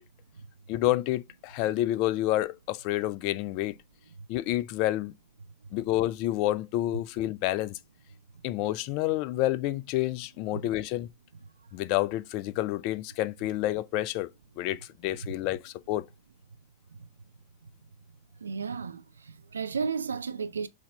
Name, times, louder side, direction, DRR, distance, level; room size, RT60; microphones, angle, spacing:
voice 1, 0.7-3.8 4.3-5.1 5.7-7.8 8.4-11.1 11.7-14.3 14.6-16.0, left 15 dB, 45° left, 0.3 m, -29 dB
voice 2, 18.4-20.7, right 5 dB, 70° right, 0.5 m, -33 dB
5.7 x 2.8 x 3.3 m
figure-of-eight pair, 90°, 0 cm